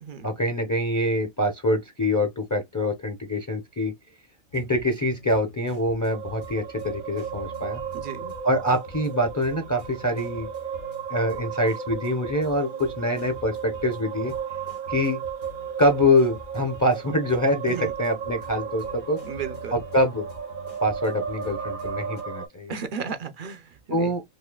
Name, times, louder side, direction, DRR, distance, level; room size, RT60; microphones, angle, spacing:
voice 1, 0.2-3.9 4.5-7.8 8.4-10.5 11.1-14.3 14.9-15.2 15.8-19.2 19.7-20.2 20.8-22.7 23.9-24.2, left 1 dB, 20° left, 0.6 m, -25 dB
sound 1, 4.5-22.2, left 2 dB, 65° left, 1.5 m, -46 dB
sound 2, 6.1-22.5, right 7 dB, 80° right, 1.2 m, -35 dB
voice 2, 7.9-8.3 17.7-17.9 19.2-19.8 22.7-24.1, right 6 dB, 50° right, 0.6 m, -34 dB
5.3 x 2.1 x 2.3 m
omnidirectional pair, 1.4 m